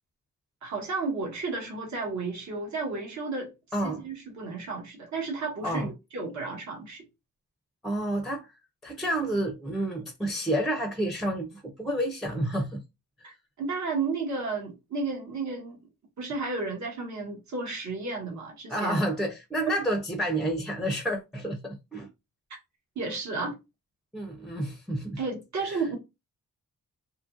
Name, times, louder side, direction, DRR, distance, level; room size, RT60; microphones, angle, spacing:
voice 1, 0.6-3.5 3.8-7.0 13.2-15.8 16.2-19.0 23.0-23.5 25.2-26.0, right 3 dB, 60° right, 1.1 m, -33 dB
voice 2, 3.7-4.0 5.6-5.9 7.8-8.5 8.8-12.8 18.7-22.1 24.1-25.2 25.6-25.8, right 1 dB, ahead, 0.4 m, -29 dB
2.8 x 2.5 x 2.4 m
wide cardioid pair, 130°, 32 cm